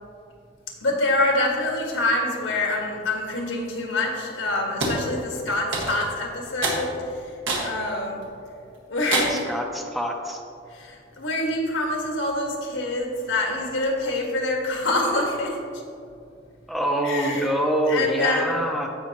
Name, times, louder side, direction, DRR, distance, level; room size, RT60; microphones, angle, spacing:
voice 1, 0.8-7.3 7.6-8.2 8.9-9.4 10.7-15.6 17.0-17.5 17.9-18.5, left 2 dB, 85° left, 0 dB, 1.8 m, -26 dB
sound 1, 4.8-5.0 5.7-6.1 6.6-6.8 7.5-7.7 8.2-8.3 9.1-9.5, right 2 dB, 80° right, 1.7 m, -25 dB
voice 2, 9.3-10.4 16.7-18.9, equal, ahead, 1 dB, 0.6 m, -25 dB
15.5 x 5.4 x 3.0 m, 2.5 s
head